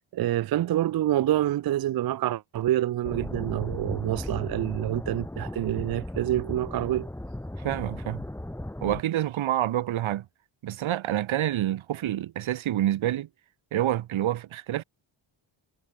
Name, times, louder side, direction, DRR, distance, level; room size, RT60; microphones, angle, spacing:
voice 1, 0.1-7.1, right 13 dB, 50° right, 0.5 m, -27 dB
sound 1, 3.0-9.0, left 1 dB, 5° left, 1.7 m, -36 dB
voice 2, 7.6-8.2 8.8-10.3 10.6-13.3 13.7-14.8, right 12 dB, 80° right, 1.2 m, -27 dB
wide cardioid pair, 125°, 47 cm